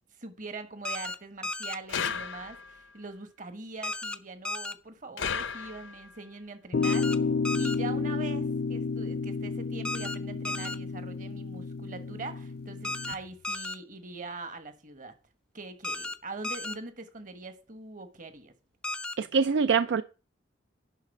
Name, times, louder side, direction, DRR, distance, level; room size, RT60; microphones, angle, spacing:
voice 1, 0.2-7.2 7.5-15.1 15.5-18.5, right 3 dB, 45° right, 1.3 m, -42 dB
sound 1, 0.9-1.2 1.4-1.8 3.8-4.2 4.5-4.7 6.8-7.2 7.5-7.8 9.9-10.2 10.5-10.8 12.8-13.2 13.4-13.8 15.8-16.2 16.4-16.8 18.8-19.2, left 2 dB, 5° left, 0.4 m, -34 dB
sound 2, 1.9-2.8 5.2-6.1, left 6 dB, 85° left, 0.9 m, -34 dB
sound 3, 6.7-13.1, left 4 dB, 55° left, 0.6 m, -31 dB
voice 2, 19.2-20.0, right 5 dB, 70° right, 0.4 m, -24 dB
11.0 x 4.1 x 7.0 m
head